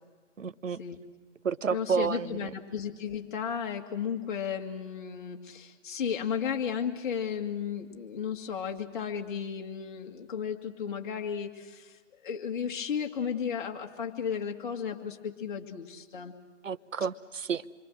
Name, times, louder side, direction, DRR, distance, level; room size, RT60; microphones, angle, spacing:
voice 1, 0.4-0.8 1.4-2.6 16.6-17.6, right 6 dB, 80° right, 14 dB, 0.9 m, -31 dB
voice 2, 1.7-16.3, left 7 dB, 40° left, 2 dB, 2.1 m, -34 dB
27.0 x 23.5 x 6.3 m, 1.4 s
figure-of-eight pair, 140°, 38 cm